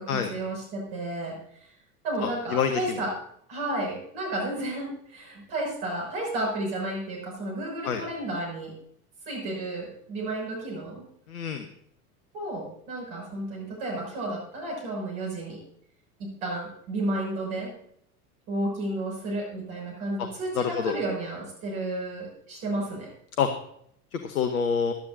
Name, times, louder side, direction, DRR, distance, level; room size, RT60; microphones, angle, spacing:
voice 1, 0.0-1.7 2.0-3.2 3.5-8.7 9.3-11.0 12.3-15.6 16.2-17.7 18.5-23.1, right 1 dB, 55° right, -1 dB, 6.3 m, -32 dB
voice 2, 2.2-3.0 7.8-8.0 11.3-11.7 20.5-20.9 23.4-23.5 24.1-24.9, left 6 dB, 70° left, 8 dB, 1.2 m, -27 dB
18.0 x 11.5 x 2.7 m, 0.67 s
figure-of-eight pair, 75°, 44 cm